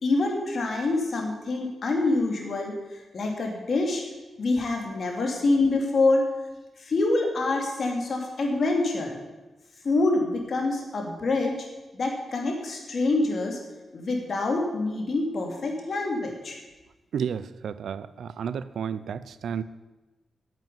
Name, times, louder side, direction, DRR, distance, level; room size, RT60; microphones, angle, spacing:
voice 1, 0.0-4.0 4.4-6.3 6.8-9.2 9.8-11.7 11.9-13.6 13.9-16.6, left 2 dB, 60° left, 2 dB, 3.0 m, -26 dB
voice 2, 17.1-19.6, right 7 dB, 80° right, 15 dB, 0.5 m, -32 dB
9.0 x 8.3 x 9.5 m, 1.1 s
cardioid pair, 60°, 0 cm